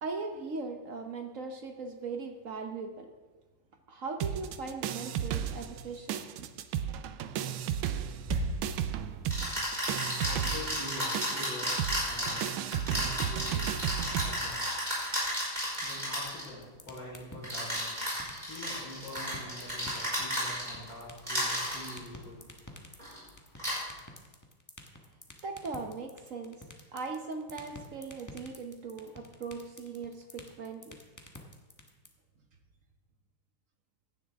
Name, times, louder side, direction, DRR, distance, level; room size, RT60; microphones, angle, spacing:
voice 1, 0.0-3.1 3.9-6.5 25.4-26.6 26.9-31.0, right 4 dB, 55° right, 5 dB, 1.0 m, -39 dB
sound 1, 4.2-5.8 6.1-14.3, right 9 dB, 80° right, 1.4 m, -33 dB
sound 2, 8.3-8.4 9.3-16.4 17.4-20.9 21.2-21.9 23.0-23.2 23.6-23.8, equal, 20° right, 5.1 m, -33 dB
voice 2, 10.2-11.7 12.0-12.5 12.9-13.6 14.0-14.7 15.8-18.0 18.5-22.4, left 1 dB, 70° left, -9 dB, 4.9 m, -45 dB
sound 3, 14.9-32.1, left 1 dB, 10° left, 0.9 m, -48 dB
16.0 x 11.0 x 3.5 m, 1.3 s
omnidirectional pair, 2.2 m